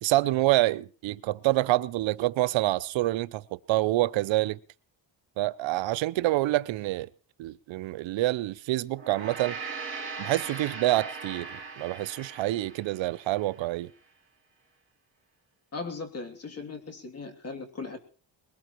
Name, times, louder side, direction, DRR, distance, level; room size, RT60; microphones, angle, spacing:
voice 1, 0.0-4.6 5.4-7.1 7.4-9.6 10.2-13.9, right 17 dB, 80° right, 0.7 m, -27 dB
Gong, 8.9-13.5, right 4 dB, 25° right, 4.3 m, -39 dB
voice 2, 15.7-18.0, left 4 dB, 35° left, 2.8 m, -38 dB
21.5 x 19.0 x 3.0 m
cardioid pair, 125°, 45 cm